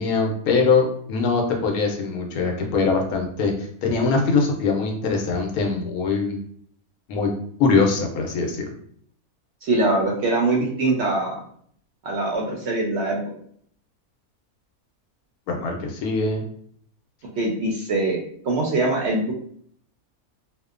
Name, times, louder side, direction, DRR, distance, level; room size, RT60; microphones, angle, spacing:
voice 1, 0.0-3.5 3.8-6.4 7.1-7.3 7.6-8.7 15.5-16.4, left 4 dB, 80° left, 2 dB, 1.1 m, -22 dB
voice 2, 9.6-11.3 12.0-13.2 17.3-18.2 18.4-19.3, right 2 dB, 65° right, -2 dB, 0.7 m, -22 dB
2.7 x 2.1 x 2.4 m, 0.62 s
omnidirectional pair, 1.5 m